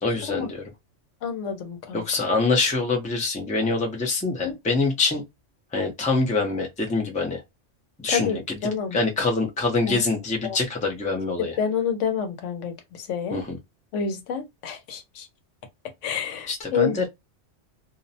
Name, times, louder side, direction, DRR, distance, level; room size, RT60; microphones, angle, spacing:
voice 1, 0.0-0.6 1.9-5.2 5.7-7.4 8.0-8.6 8.9-11.6 13.3-13.6 16.5-17.1, left 3 dB, 10° left, 0.4 m, -25 dB
voice 2, 1.2-2.1 4.4-4.6 8.1-9.0 9.9-10.0 10.4-10.6 11.4-13.4 13.9-15.3 16.0-17.1, left 6 dB, 85° left, 1.0 m, -28 dB
2.5 x 2.0 x 2.6 m
omnidirectional pair, 1.2 m